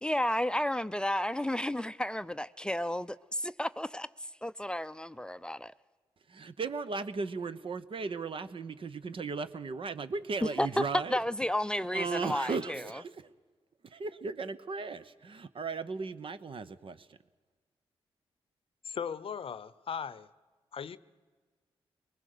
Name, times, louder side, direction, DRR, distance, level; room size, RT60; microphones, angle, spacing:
voice 1, 0.0-4.1 4.4-5.7 10.4-10.8 11.1-13.0, left 1 dB, 10° left, 0.6 m, -32 dB
voice 2, 6.3-11.2 11.9-13.1 13.9-17.1, right 4 dB, 55° right, 1.0 m, -36 dB
voice 3, 18.8-20.3 20.7-21.0, left 7 dB, 60° left, 0.7 m, -38 dB
23.5 x 20.0 x 6.7 m
cardioid pair, 55°, 11 cm